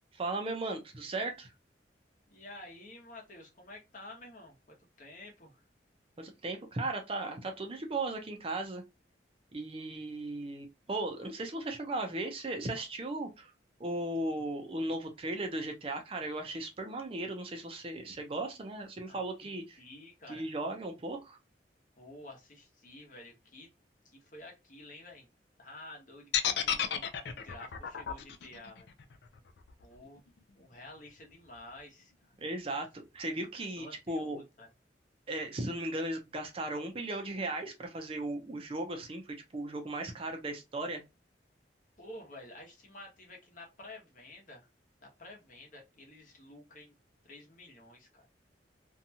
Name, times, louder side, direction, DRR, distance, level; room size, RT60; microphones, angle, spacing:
voice 1, 0.1-1.5 6.2-8.8 9.5-13.5 13.8-19.8 20.3-21.4 32.4-34.4 35.3-41.0, right 2 dB, 30° right, 0.5 m, -36 dB
voice 2, 2.3-5.6 14.3-14.4 19.1-19.5 19.8-20.5 22.0-23.7 24.0-25.3 25.6-28.9 29.8-30.2 30.5-32.3 33.8-34.7 42.0-44.7 45.0-46.9 47.2-48.3, left 1 dB, 45° left, 0.9 m, -51 dB
sound 1, 26.3-30.4, left 8 dB, 70° left, 0.4 m, -33 dB
2.7 x 2.3 x 2.7 m
head